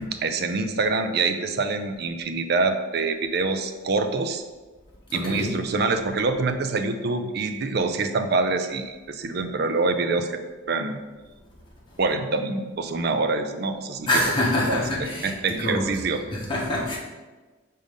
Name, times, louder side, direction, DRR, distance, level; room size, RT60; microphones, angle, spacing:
voice 1, 0.0-4.4 5.1-10.3 10.7-11.0 12.0-14.2 14.7-14.8 15.2-16.2, right 3 dB, 50° right, 8 dB, 0.5 m, -25 dB
voice 2, 5.1-5.5 14.1-15.3 15.6-15.9 16.3-17.0, left 1 dB, 25° left, -4 dB, 1.4 m, -25 dB
5.3 x 3.8 x 5.3 m, 1.3 s
head